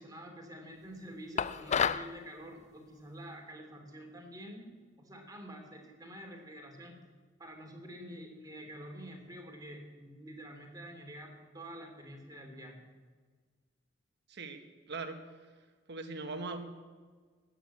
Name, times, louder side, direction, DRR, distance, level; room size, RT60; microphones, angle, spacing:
voice 1, 0.0-4.7 5.0-7.0 7.4-12.9, equal, 20° right, 2 dB, 2.7 m, -48 dB
sound 1, 1.4-2.1, left 7 dB, 35° left, 0.4 m, -29 dB
voice 2, 14.3-14.6 14.9-15.2 15.9-16.6, right 3 dB, 60° right, 6 dB, 1.5 m, -39 dB
13.0 x 9.0 x 8.8 m, 1.5 s
head